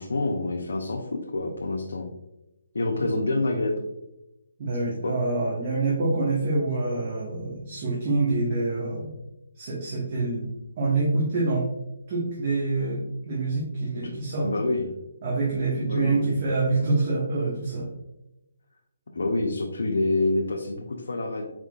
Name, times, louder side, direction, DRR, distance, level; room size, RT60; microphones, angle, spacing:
voice 1, 0.0-2.1 2.7-3.8 5.0-5.1 14.0-14.1 14.4-14.9 15.8-16.4 19.1-21.4, left 2 dB, 80° left, 0 dB, 0.6 m, -27 dB
voice 2, 4.6-9.2 9.6-10.5 10.8-11.7 12.1-14.5 15.2-17.9, right 3 dB, 40° right, -5 dB, 1.1 m, -26 dB
4.4 x 3.7 x 2.4 m, 0.93 s
hypercardioid pair, 160°, 0 cm